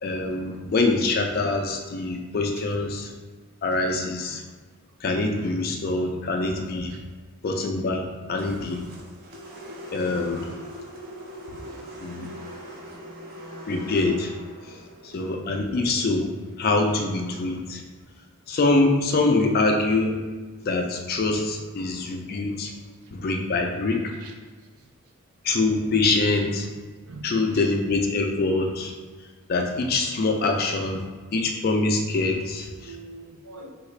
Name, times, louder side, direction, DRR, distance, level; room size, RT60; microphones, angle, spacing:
voice 1, 0.0-3.1 3.6-4.4 5.0-7.0 7.4-8.9 9.9-10.5 12.0-12.3 13.7-14.3 15.0-16.3 16.6-17.8 18.5-20.2 20.6-22.7 23.1-24.1 25.4-26.7 27.2-28.9 29.5-31.0 31.3-33.0, left 3 dB, 45° left, 3 dB, 0.4 m, -24 dB
sound 1, 8.4-16.6, equal, 45° right, 0.5 m, -42 dB
voice 2, 14.6-15.2 15.5-15.7 24.2-24.3 27.0-27.4 32.8-33.7, right 2 dB, 90° right, 3 dB, 0.5 m, -44 dB
3.6 x 2.4 x 3.2 m, 1.3 s
head